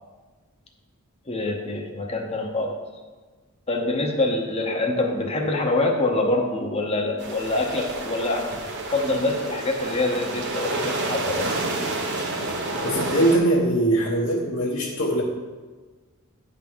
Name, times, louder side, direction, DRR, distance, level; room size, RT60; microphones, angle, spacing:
voice 1, 1.3-2.8 3.7-8.6 8.9-11.5, left 2 dB, 30° left, 1 dB, 0.8 m, -25 dB
sound 1, 7.2-13.4, right 2 dB, 55° right, 1.1 m, -29 dB
voice 2, 12.8-15.2, right 1 dB, 60° left, -5 dB, 1.0 m, -21 dB
9.8 x 3.7 x 6.1 m, 1.4 s
head